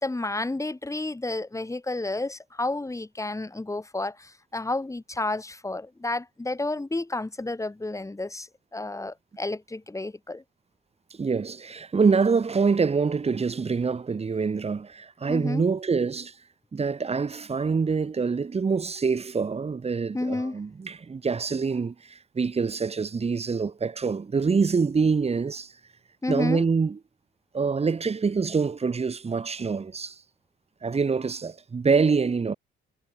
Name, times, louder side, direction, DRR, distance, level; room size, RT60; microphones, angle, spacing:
voice 1, 0.0-10.4 15.3-15.6 20.1-20.6 26.2-26.6, left 2 dB, 15° left, 4.6 m, -31 dB
voice 2, 11.2-16.3 16.7-25.7 26.3-27.0 27.5-30.2 30.8-32.5, right 5 dB, 30° right, 2.2 m, -25 dB
cardioid pair, 90°, 20 cm